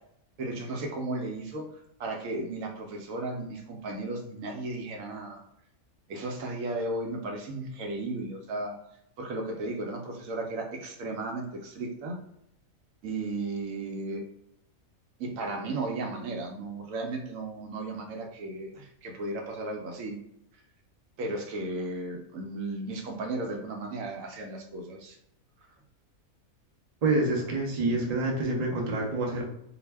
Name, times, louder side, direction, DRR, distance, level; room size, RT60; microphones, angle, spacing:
voice 1, 0.4-1.7 2.0-5.4 6.1-8.7 9.2-12.2 13.0-14.2 15.2-20.2 21.2-25.2, right 2 dB, 75° right, 2 dB, 0.9 m, -35 dB
voice 2, 27.0-29.4, right 2 dB, 55° right, -1 dB, 0.4 m, -27 dB
2.5 x 2.1 x 3.2 m, 0.77 s
omnidirectional pair, 1.5 m